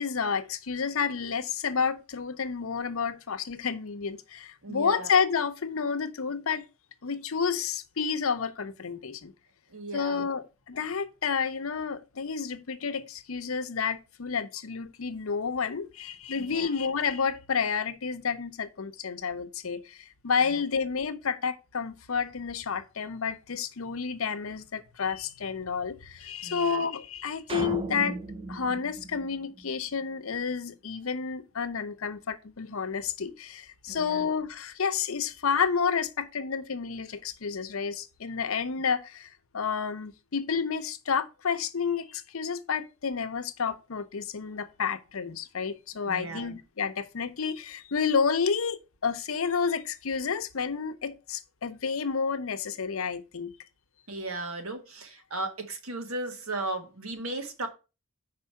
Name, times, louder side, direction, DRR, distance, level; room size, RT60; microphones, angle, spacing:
voice 1, 0.0-6.6 7.0-9.3 9.9-28.2 28.5-53.5, left 6 dB, 75° left, 0.7 m, -30 dB
voice 2, 4.6-5.1 9.7-10.3 16.3-16.7 20.4-20.6 26.4-26.8 33.9-34.3 46.0-46.6 54.1-57.7, right 2 dB, 80° right, 1.4 m, -36 dB
sound 1, 27.5-30.0, right 2 dB, 25° right, 0.4 m, -36 dB
5.0 x 4.8 x 5.6 m
head